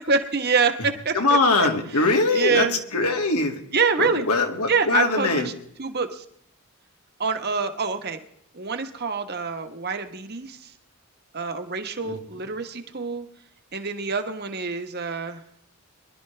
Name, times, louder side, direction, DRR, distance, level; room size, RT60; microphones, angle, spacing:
voice 1, 0.0-1.2 1.6-1.7 1.9-2.1 2.3-2.8 3.7-4.3 4.7-5.5 5.8-6.2 7.2-8.2 8.5-10.6 11.3-13.3 13.7-15.4, right 5 dB, 45° right, 7 dB, 1.3 m, -26 dB
voice 2, 1.1-2.7 2.9-3.6 4.0-5.5 12.0-12.1, left 3 dB, 80° left, 3 dB, 2.2 m, -22 dB
23.5 x 12.0 x 3.4 m, 0.71 s
head